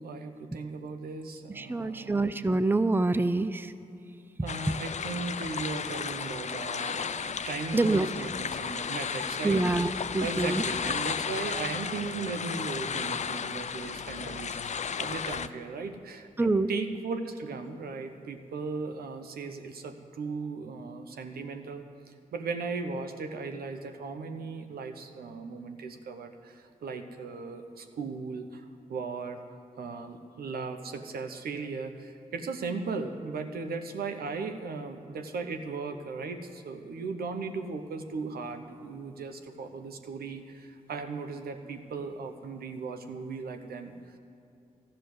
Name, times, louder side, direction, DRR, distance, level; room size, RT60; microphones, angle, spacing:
voice 1, 0.0-2.3 4.4-9.7 10.2-21.9 22.3-29.4 29.8-44.2, right 4 dB, 80° right, 6 dB, 0.9 m, -37 dB
voice 2, 1.6-3.6 7.7-8.1 9.4-10.6 16.4-16.7, right 2 dB, 15° right, 13 dB, 0.5 m, -26 dB
sound 1, 4.5-15.5, left 6 dB, 50° left, 0.5 m, -34 dB
13.0 x 6.7 x 9.4 m, 2.7 s
supercardioid pair, 45°, 16 cm